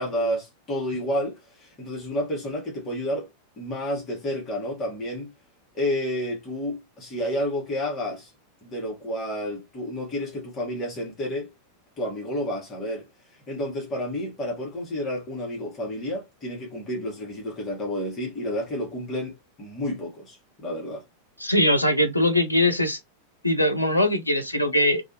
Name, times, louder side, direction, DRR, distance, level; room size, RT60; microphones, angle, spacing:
voice 1, 0.0-3.3 3.6-5.3 5.7-8.3 8.6-11.5 12.0-13.1 13.5-21.0, left 1 dB, 25° left, 1.2 m, -30 dB
voice 2, 21.4-23.0 23.4-25.0, left 1 dB, 85° left, 0.4 m, -21 dB
2.6 x 2.2 x 2.7 m
figure-of-eight pair, 90°, 0 cm